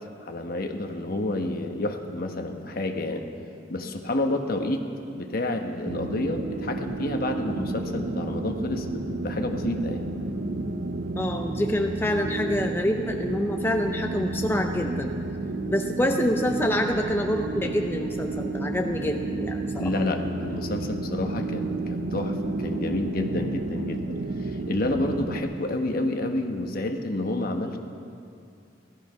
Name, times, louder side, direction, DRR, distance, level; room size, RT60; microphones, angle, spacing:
voice 1, 0.2-3.2 3.7-4.8 5.1-10.0 19.8-27.8, left 1 dB, 55° left, 4 dB, 1.3 m, -29 dB
sound 1, 5.8-25.4, right 2 dB, 80° right, 0.8 m, -31 dB
voice 2, 11.1-15.1 15.7-19.9, left 1 dB, 10° left, 3 dB, 0.6 m, -26 dB
17.0 x 13.0 x 5.7 m, 2.5 s
head